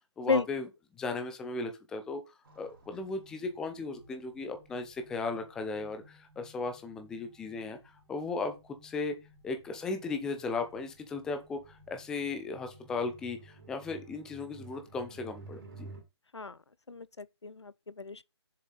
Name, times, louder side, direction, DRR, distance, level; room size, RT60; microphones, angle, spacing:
voice 1, 0.2-0.7 0.9-2.2 2.6-7.8 8.1-9.2 9.4-15.9, left 3 dB, 5° left, 0.7 m, -36 dB
sound 1, 2.4-16.0, right 2 dB, 50° right, 4.0 m, -54 dB
voice 2, 16.9-18.2, left 4 dB, 75° left, 0.5 m, -32 dB
7.1 x 6.9 x 4.0 m
figure-of-eight pair, 145°, 14 cm